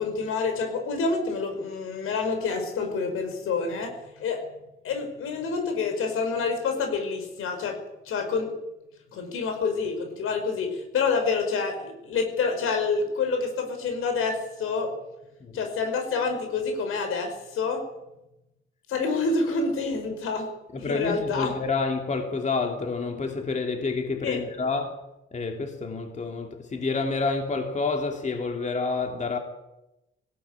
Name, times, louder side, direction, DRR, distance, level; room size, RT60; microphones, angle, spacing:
voice 1, 0.0-4.5 4.8-7.8 8.1-8.6 9.1-15.0 15.5-17.9 18.9-21.5 24.2-24.4, left 4 dB, 90° left, 5.3 m, -28 dB
voice 2, 20.7-25.0 25.3-29.4, left 4 dB, 35° left, 2.7 m, -28 dB
19.0 x 16.5 x 8.9 m
cardioid pair, 120°, 21 cm